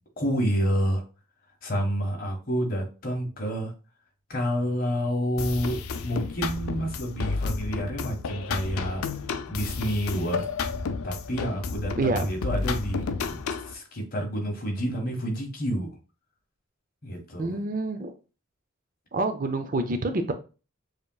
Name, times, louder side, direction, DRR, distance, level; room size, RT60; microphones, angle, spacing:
voice 1, 0.2-1.0 1.6-3.7 4.3-9.1 9.5-10.4 11.0-13.4 13.6-15.9 17.0-17.5, equal, 45° left, 1 dB, 1.6 m, -29 dB
sound 1, 5.4-13.7, left 4 dB, 90° left, 0.5 m, -31 dB
voice 2, 12.0-12.3 17.4-18.1 19.1-20.3, right 2 dB, 40° right, 8 dB, 0.5 m, -27 dB
6.7 x 3.0 x 2.3 m, 0.33 s
head